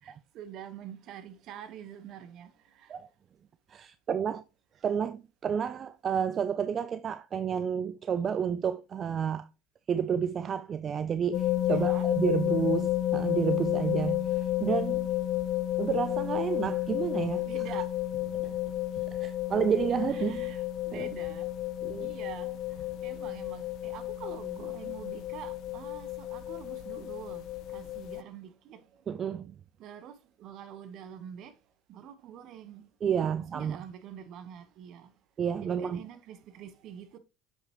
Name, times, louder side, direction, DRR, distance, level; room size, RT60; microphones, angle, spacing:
voice 1, 0.0-2.9 11.7-12.1 17.4-18.0 20.1-21.5 22.0-29.1 29.8-31.6 31.9-35.1 35.6-37.2, right 9 dB, 60° right, 1.1 m, -46 dB
voice 2, 3.7-4.4 4.8-9.5 9.9-15.1 15.8-17.5 18.3-18.6 19.0-20.5 20.9-21.1 21.8-22.1 29.1-29.6 33.0-33.8 35.4-36.0, right 7 dB, 40° right, 0.4 m, -30 dB
sound 1, 11.3-28.2, left 14 dB, 65° left, 0.5 m, -31 dB
7.3 x 5.6 x 3.0 m
supercardioid pair, 85°, 0 cm